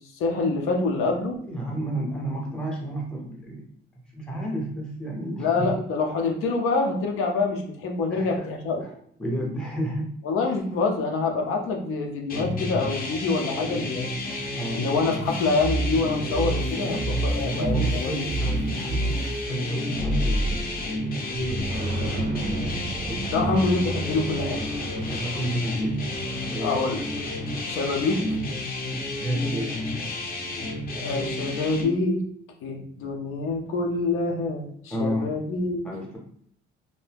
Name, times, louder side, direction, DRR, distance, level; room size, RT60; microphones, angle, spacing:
voice 1, 0.2-1.4 5.4-8.8 10.2-14.1 14.7-17.0 17.2-18.3 23.3-24.7 26.6-27.0 27.7-28.2 31.0-32.2 32.6-35.9, left 3 dB, 85° left, 2 dB, 0.6 m, -26 dB
voice 2, 1.2-3.7 4.1-5.7 8.1-8.5 8.8-8.9 9.2-10.2 14.5-14.9 16.8-23.5 24.1-24.2 25.1-26.0 26.5-26.9 29.1-30.0 34.9-35.4 35.8-36.2, equal, 5° left, -2 dB, 0.7 m, -32 dB
sound 1, 12.3-31.8, left 1 dB, 45° left, 0.6 m, -31 dB
sound 2, 15.5-19.4, right 2 dB, 80° right, 0.6 m, -28 dB
sound 3, 19.9-21.0 21.3-28.4, right 1 dB, 35° right, 0.5 m, -32 dB
2.7 x 2.1 x 3.3 m, 0.64 s
cardioid pair, 155°, 21 cm